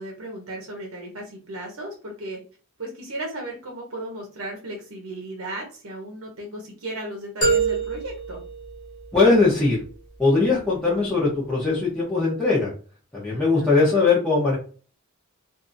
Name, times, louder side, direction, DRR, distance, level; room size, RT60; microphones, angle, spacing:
voice 1, 0.0-2.4 2.8-8.4 13.3-13.7, right 1 dB, 75° right, 0 dB, 0.8 m, -35 dB
sound 1, 7.4-9.5, right 4 dB, 25° left, 1.2 m, -25 dB
voice 2, 9.1-9.8 10.2-12.7 13.1-14.6, left 3 dB, 5° left, -8 dB, 0.8 m, -20 dB
2.7 x 2.5 x 2.6 m, 0.39 s
head